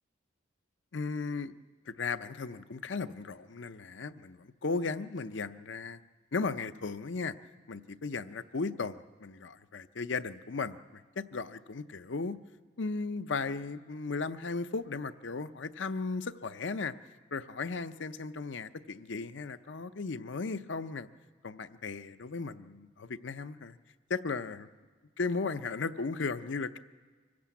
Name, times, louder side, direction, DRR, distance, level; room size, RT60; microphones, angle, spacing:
voice 1, 0.9-1.6 1.9-6.0 6.3-7.3 7.7-12.4 12.8-16.9 17.3-21.1 21.4-23.8 24.1-24.7 25.2-26.8, left 4 dB, 65° left, 12 dB, 0.6 m, -36 dB
25.0 x 15.0 x 8.4 m, 1.5 s
head